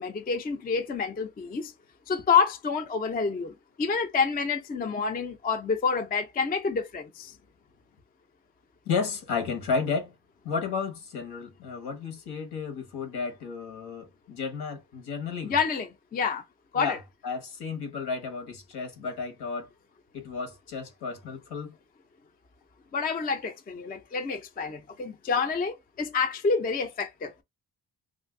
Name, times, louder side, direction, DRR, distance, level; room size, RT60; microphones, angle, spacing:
voice 1, 0.0-1.7 2.1-7.3 15.4-16.4 16.7-17.0 22.9-27.4, left 5 dB, 25° left, 0.4 m, -28 dB
voice 2, 8.9-10.1 10.4-15.5 16.7-17.0 17.2-19.7 20.1-21.7, left 5 dB, 80° left, 1.2 m, -32 dB
2.6 x 2.6 x 3.6 m
wide cardioid pair, 175°, 39 cm